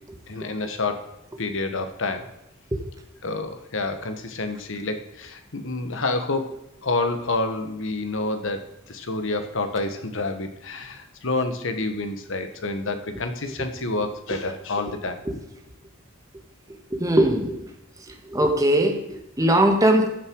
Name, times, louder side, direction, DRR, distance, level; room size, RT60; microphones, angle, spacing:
voice 1, 0.3-1.1 1.4-2.3 3.2-15.2, left 2 dB, 65° left, 7 dB, 1.5 m, -28 dB
voice 2, 16.9-17.6 18.3-20.1, right 1 dB, 15° right, 3 dB, 1.6 m, -20 dB
15.0 x 7.6 x 4.8 m, 0.84 s
head